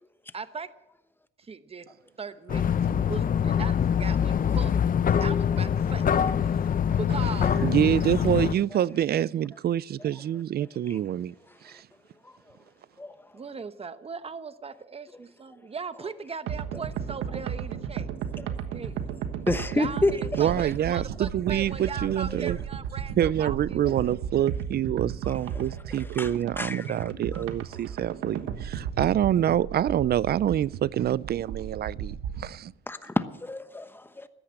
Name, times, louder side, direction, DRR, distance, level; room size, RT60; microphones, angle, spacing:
voice 1, 0.3-0.7 1.4-1.9 2.2-4.7 5.2-6.1 6.4-6.7 6.9-7.7 13.3-18.1 18.7-19.0 19.7-24.1, right 5 dB, 30° right, 1.0 m, -39 dB
sound 1, 2.5-8.6, left 8 dB, 45° left, 0.7 m, -24 dB
voice 2, 7.6-11.3 11.6-11.8 20.4-22.6 23.2-32.7, right 11 dB, 55° right, 0.4 m, -26 dB
voice 3, 12.2-12.6 13.0-13.1 18.4-18.5 19.5-20.5 22.3-22.4 25.2-25.6 25.9-27.0 27.3-27.4 27.7-27.8 32.9-34.3, left 2 dB, 10° left, 1.1 m, -31 dB
sound 2, 16.5-32.5, right 8 dB, 90° right, 1.4 m, -34 dB
14.0 x 10.0 x 8.8 m
cardioid pair, 90°, 20 cm